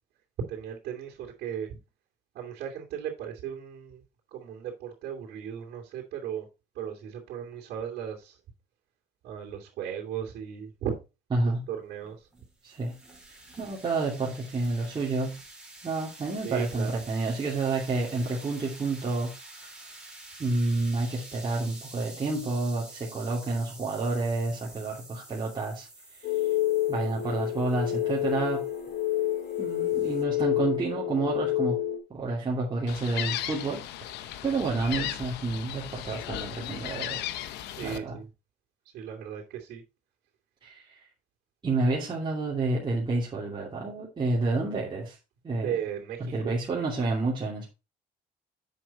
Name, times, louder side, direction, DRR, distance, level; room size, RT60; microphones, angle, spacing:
voice 1, 0.5-1.8 2.3-4.0 4.3-6.5 6.7-8.4 9.2-10.9 11.4-12.3 16.4-17.0 37.7-38.3 38.9-39.8 45.6-46.5, right 9 dB, 75° right, 2.7 m, -36 dB
voice 2, 11.3-11.7 12.6-12.9 13.6-15.4 15.8-19.3 20.4-25.9 26.2-26.3 26.9-28.7 29.6-31.8 32.1-37.2 37.8-38.2 40.6-41.0 41.6-45.2 45.4-45.7 46.2-47.7, right 3 dB, 30° right, 2.6 m, -29 dB
sound 1, 12.0-30.2, right 2 dB, 5° right, 4.1 m, -48 dB
sound 2, 26.2-32.0, left 13 dB, 70° left, 2.3 m, -28 dB
Gull seagull, 32.9-38.0, left 12 dB, 85° left, 0.8 m, -36 dB
8.0 x 6.0 x 4.1 m
cardioid pair, 110°, 17 cm